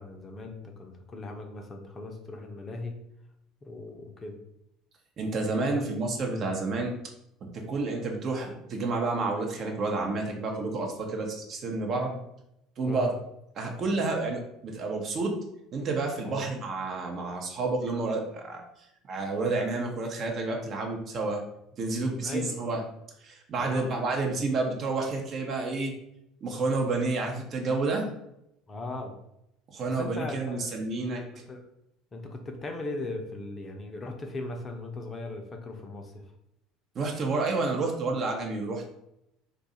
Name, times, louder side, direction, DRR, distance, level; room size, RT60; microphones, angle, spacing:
voice 1, 0.0-2.9 3.6-4.4 5.7-5.9 12.9-13.1 16.2-16.4 21.8-22.6 23.6-23.9 28.7-29.1 29.9-30.7 31.3-31.6 32.1-36.2, left 2 dB, 30° left, 3 dB, 0.6 m, -38 dB
voice 2, 5.2-7.0 7.4-12.2 12.8-13.1 13.6-15.3 15.7-18.6 19.1-21.4 21.8-22.8 23.2-25.9 26.4-28.1 29.7-31.2 36.9-38.9, right 3 dB, 45° right, 2 dB, 0.7 m, -30 dB
2.6 x 2.3 x 4.0 m, 0.80 s
figure-of-eight pair, 65°, 0 cm